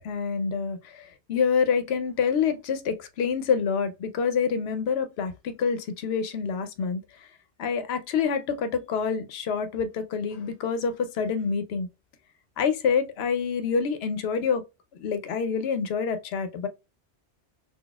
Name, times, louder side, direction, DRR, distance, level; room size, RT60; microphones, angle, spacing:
voice 1, 0.0-7.3 7.6-11.9 12.6-14.6 14.9-16.7, left 6 dB, 70° left, 0.8 m, -27 dB
3.9 x 2.3 x 2.2 m
omnidirectional pair, 1.1 m